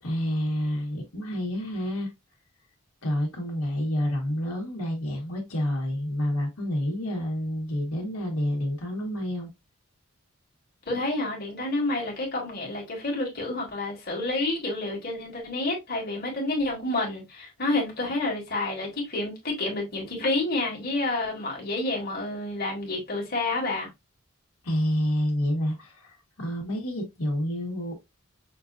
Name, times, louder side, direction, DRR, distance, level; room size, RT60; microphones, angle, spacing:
voice 1, 0.0-2.1 3.0-9.5 24.6-28.0, equal, 90° left, 1.4 m, -29 dB
voice 2, 10.9-23.9, left 2 dB, 45° left, 1.5 m, -29 dB
5.9 x 2.5 x 2.5 m
head